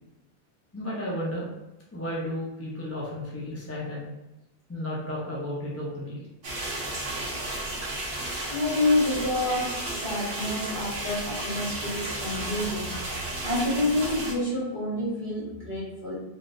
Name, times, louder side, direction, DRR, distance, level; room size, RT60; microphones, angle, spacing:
voice 1, 0.7-1.5 1.9-4.1 4.7-6.2, left 1 dB, 20° left, -5 dB, 0.5 m, -33 dB
sound 1, 6.4-14.3, right 1 dB, 55° right, 1.0 m, -33 dB
voice 2, 8.5-13.1 13.4-16.2, left 2 dB, 50° left, -9 dB, 1.7 m, -28 dB
3.5 x 2.6 x 2.5 m, 0.97 s
omnidirectional pair, 1.1 m